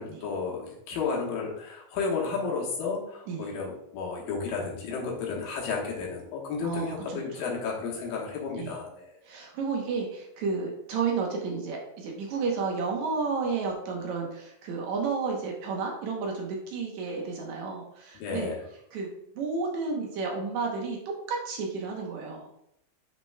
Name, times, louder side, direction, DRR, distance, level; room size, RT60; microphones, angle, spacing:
voice 1, 0.0-9.2 18.1-18.6, left 5 dB, 80° left, -3 dB, 3.0 m, -32 dB
voice 2, 6.6-7.5 8.6-8.8 9.2-18.5 18.9-19.1 19.3-21.0 21.3-22.5, right 4 dB, 65° right, 0 dB, 2.0 m, -32 dB
8.5 x 5.9 x 2.3 m, 0.76 s
omnidirectional pair, 4.0 m